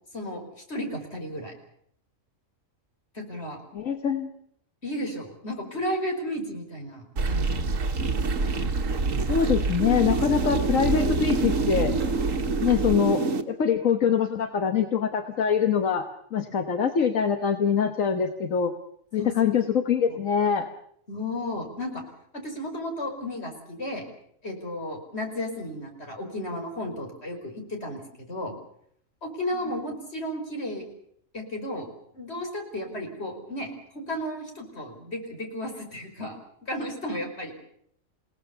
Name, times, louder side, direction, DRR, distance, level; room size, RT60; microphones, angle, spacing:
voice 1, 0.7-1.5 3.1-3.6 4.8-7.6 19.2-19.3 20.1-20.2 21.1-22.0 22.3-24.0 24.4-28.0 28.3-28.5 29.2-30.9 31.3-31.9 32.1-36.4 36.6-37.5, left 1 dB, 50° left, 3 dB, 5.5 m, -33 dB
voice 2, 3.7-4.3 9.3-11.9 12.6-18.7 19.1-20.7, left 7 dB, 75° left, 7 dB, 1.7 m, -24 dB
sound 1, 7.2-13.4, right 3 dB, 75° right, 1.9 m, -26 dB
29.0 x 18.0 x 6.9 m, 0.67 s
omnidirectional pair, 1.4 m